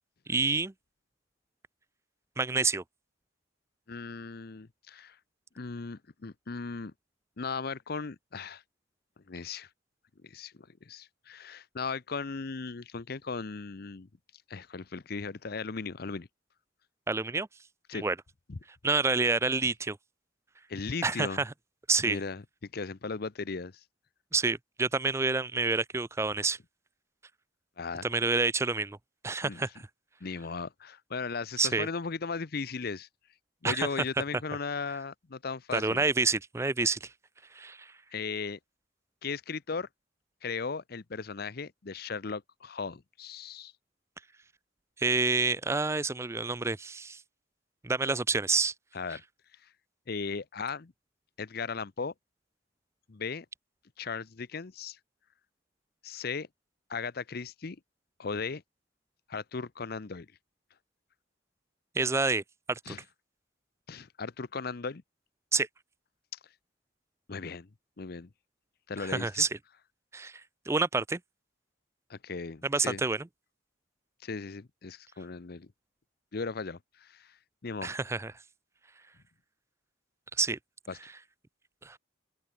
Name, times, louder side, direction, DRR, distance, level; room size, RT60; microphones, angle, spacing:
voice 1, 0.3-0.7 2.4-2.8 17.1-17.5 17.9-18.2 18.8-20.0 21.0-21.5 21.9-22.2 24.3-26.6 28.0-29.0 29.2-29.7 31.6-31.9 33.6-33.9 35.7-37.1 37.5-37.9 45.0-47.2 47.8-48.7 62.0-62.4 62.7-63.0 65.5-65.7 69.0-69.5 70.1-70.4 70.7-71.2 72.6-73.3 77.8-78.3 80.4-80.6 81.8-82.0, right 3 dB, 15° right, 0.4 m, -28 dB
voice 2, 3.9-5.2 5.5-6.9 7.4-8.6 9.3-9.7 10.2-16.3 17.9-18.0 18.5-18.6 20.7-21.4 22.0-22.4 22.7-23.8 27.8-28.1 29.4-29.6 30.2-33.1 33.6-36.1 38.1-38.6 39.2-39.9 40.4-43.7 48.9-49.2 49.6-49.7 50.1-50.9 51.4-52.1 53.1-53.5 54.0-55.0 56.0-56.5 56.9-57.8 58.2-58.6 59.3-60.3 62.9-63.0 63.9-65.0 67.3-67.7 68.0-68.3 68.9-69.3 72.1-73.0 74.2-75.7 76.3-77.4 77.6-77.9 80.9-81.0, left 4 dB, 55° left, 0.7 m, -37 dB
open air
head